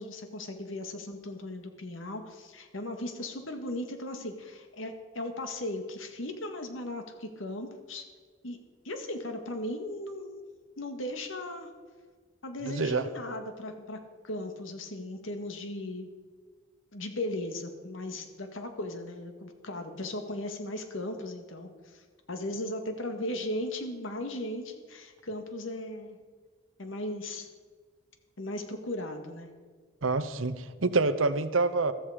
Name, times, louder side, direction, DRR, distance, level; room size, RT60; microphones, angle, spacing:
voice 1, 0.0-8.1 8.4-8.6 8.8-10.4 10.8-11.7 12.4-16.1 16.9-22.0 22.3-26.2 26.8-27.5 28.4-29.5, left 1 dB, 80° left, 6 dB, 2.0 m, -37 dB
voice 2, 12.7-13.0 30.0-31.9, right 3 dB, 85° right, 12 dB, 0.9 m, -27 dB
14.5 x 14.0 x 5.2 m, 1.5 s
head